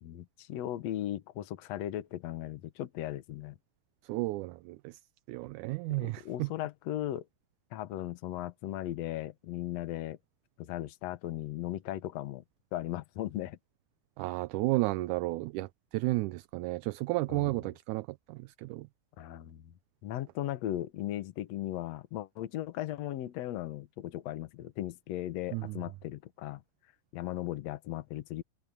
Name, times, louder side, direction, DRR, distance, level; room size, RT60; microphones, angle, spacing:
voice 1, 0.0-3.6 6.0-7.3 7.7-10.2 10.6-12.4 12.7-13.6 17.3-17.5 19.2-19.7 20.0-26.6 27.1-28.4, left 13 dB, 65° left, 2.0 m, -37 dB
voice 2, 4.0-5.0 5.3-6.5 14.2-18.9 25.5-25.8, right 21 dB, 80° right, 1.9 m, -33 dB
omnidirectional pair, 3.7 m